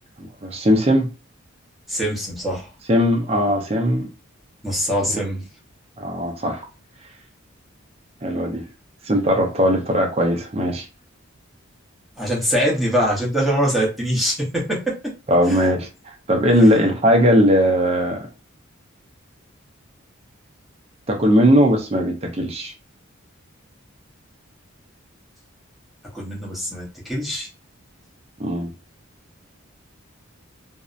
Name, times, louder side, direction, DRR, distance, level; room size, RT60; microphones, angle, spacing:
voice 1, 0.2-1.1 2.9-4.1 5.1-5.2 6.0-6.6 8.2-8.6 9.1-10.9 15.3-15.9 16.3-18.3 21.1-22.7 28.4-28.7, equal, 30° right, 0.5 m, -18 dB
voice 2, 1.9-2.7 4.6-5.4 12.2-15.0 15.4-15.7 16.6-16.7 26.1-27.5, equal, ahead, 0.8 m, -23 dB
2.6 x 2.0 x 2.4 m
head